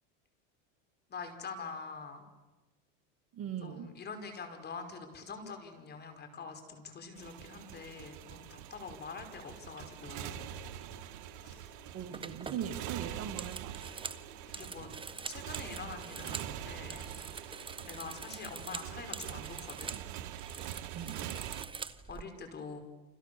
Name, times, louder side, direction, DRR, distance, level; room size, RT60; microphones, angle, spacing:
voice 1, 1.1-2.3 3.6-10.5 11.4-11.7 14.5-14.9 15.3-17.1 17.4-20.0 22.1-22.8, left 4 dB, 30° left, 6 dB, 5.4 m, -45 dB
voice 2, 3.3-3.9 11.9-13.8 20.9-21.2, right 8 dB, 45° right, 6 dB, 2.5 m, -40 dB
Motorcycle, 7.2-21.6, right 12 dB, 60° right, 2.0 m, -44 dB
Musical instrument, 10.3-18.8, left 3 dB, 75° left, 8.0 m, -58 dB
sound 1, 12.1-16.5 16.8-20.1 20.3-22.2, right 5 dB, 15° right, 1.3 m, -44 dB
29.0 x 27.5 x 7.1 m, 1.1 s
supercardioid pair, 120°, 34 cm